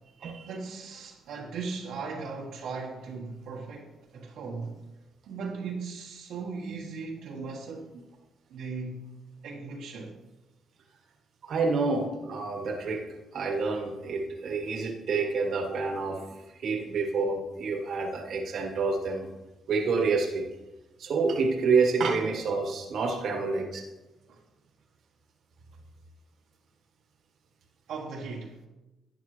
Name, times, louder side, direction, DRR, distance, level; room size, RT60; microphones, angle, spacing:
voice 1, 0.4-4.8 5.3-8.0 8.5-9.1 9.4-10.2 24.3-24.4 27.9-28.6, right 4 dB, 80° right, 1.5 m, -38 dB
voice 2, 11.4-16.2 16.6-19.3 19.7-20.5 21.0-23.8, right 4 dB, 65° right, 1.6 m, -28 dB
12.0 x 9.1 x 3.3 m
cardioid pair, 90°, 0 cm